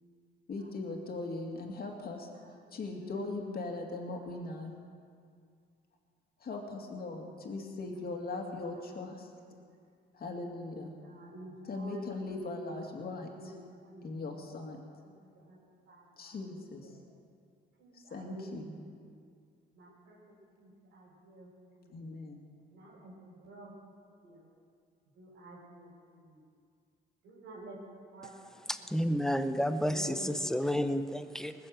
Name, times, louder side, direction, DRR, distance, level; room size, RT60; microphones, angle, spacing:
voice 1, 0.5-4.8 6.4-9.3 10.1-10.9 11.7-13.5 14.0-14.8 16.2-16.9 17.9-18.7 21.9-22.4, left 3 dB, 50° left, 1 dB, 2.4 m, -40 dB
voice 2, 2.4-3.6 4.1-4.3 8.8-8.9 9.5-9.6 10.6-12.1 12.8-14.4 15.3-15.6 15.8-17.0 17.8-19.2 19.7-20.2 20.6-21.5 21.8-22.2 22.7-23.7 24.2-24.5 25.1-26.4 27.2-28.9 29.7-31.0, right 1 dB, 85° right, -5 dB, 4.8 m, -50 dB
voice 3, 28.7-31.5, equal, ahead, 10 dB, 0.8 m, -31 dB
20.0 x 7.5 x 7.8 m, 2.2 s
cardioid pair, 90°, 20 cm